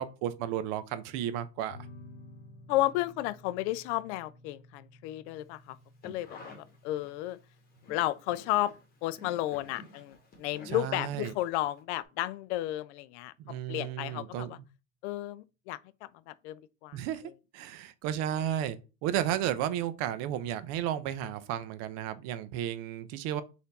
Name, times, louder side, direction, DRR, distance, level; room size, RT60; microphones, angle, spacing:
voice 1, 0.0-1.8 10.7-11.3 13.4-14.5 16.9-17.2 17.5-23.4, right 11 dB, 40° right, 0.5 m, -33 dB
sound 1, 1.7-12.7, left 2 dB, 85° left, 0.9 m, -55 dB
voice 2, 2.7-5.8 6.0-6.5 6.8-7.4 7.9-8.7 9.0-13.3 13.7-14.6 15.0-15.8 16.3-17.0, left 15 dB, 60° left, 0.5 m, -32 dB
sound 2, 5.8-7.3 7.7-11.8 12.0-12.1, left 2 dB, 25° left, 1.1 m, -51 dB
4.2 x 2.6 x 4.0 m
supercardioid pair, 135°, 40 cm